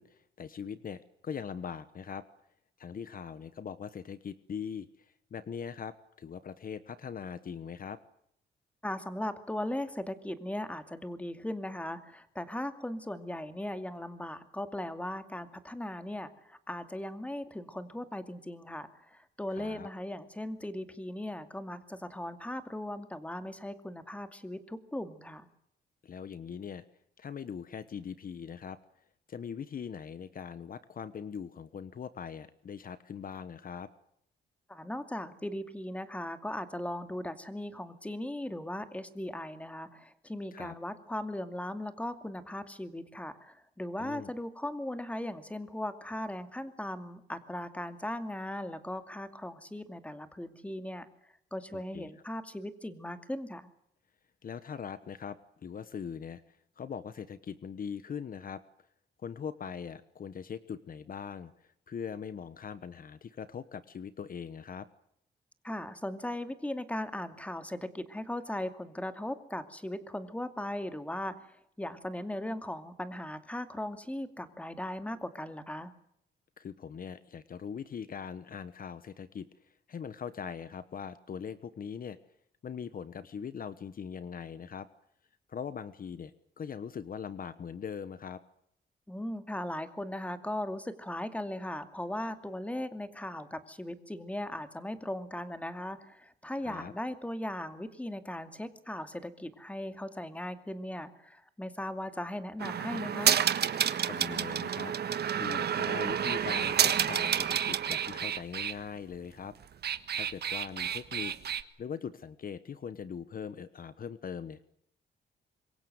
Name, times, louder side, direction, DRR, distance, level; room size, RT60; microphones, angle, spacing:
voice 1, 0.0-2.2 2.8-8.0 19.5-19.9 26.0-26.8 27.2-28.8 29.3-33.9 40.5-40.7 44.0-44.3 51.7-52.1 54.4-58.6 59.2-61.5 61.9-64.9 76.6-79.5 79.9-82.2 82.6-84.9 85.5-86.3 86.6-88.4 96.6-96.9 104.1-109.5 110.1-114.7, left 7 dB, 50° left, 14 dB, 1.1 m, -41 dB
voice 2, 8.8-25.5 34.7-51.1 51.5-53.7 65.6-71.5 71.8-75.9 89.1-103.4, left 1 dB, 5° left, 9 dB, 2.4 m, -38 dB
sound 1, 102.6-108.7 109.6-111.6, right 9 dB, 65° right, 1.4 m, -29 dB
26.0 x 23.0 x 8.0 m, 0.72 s
cardioid pair, 110°, 18 cm